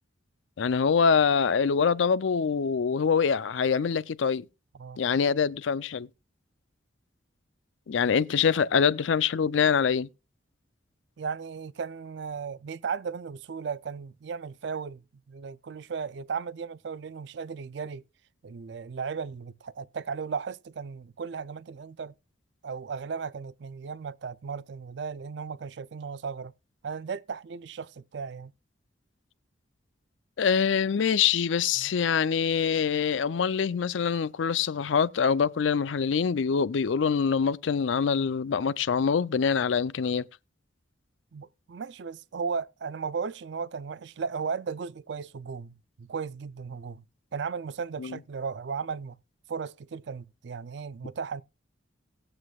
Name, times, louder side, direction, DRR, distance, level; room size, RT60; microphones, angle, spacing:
voice 1, 0.6-4.5 5.0-6.1 7.9-10.1 30.4-40.2 48.0-48.2, left 6 dB, 80° left, 0.4 m, -25 dB
voice 2, 11.2-18.0 18.4-22.1 22.6-26.5 26.8-28.5 31.8-31.9 41.3-47.0 47.3-49.2 49.5-51.4, right 5 dB, 65° right, 0.4 m, -36 dB
18.5 x 7.7 x 2.3 m
head